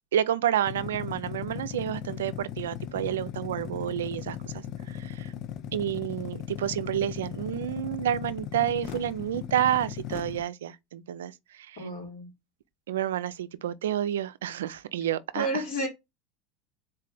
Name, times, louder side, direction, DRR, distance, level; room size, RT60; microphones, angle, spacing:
voice 1, 0.1-5.3 5.7-11.3 11.6-11.8 12.9-15.5, right 11 dB, 85° right, 0.4 m, -29 dB
sound 1, 0.6-10.4, left 10 dB, 55° left, 0.6 m, -38 dB
voice 2, 11.8-12.3 15.3-15.9, right 1 dB, 80° left, 2.9 m, -31 dB
4.0 x 3.2 x 3.8 m
hypercardioid pair, 95°, 0 cm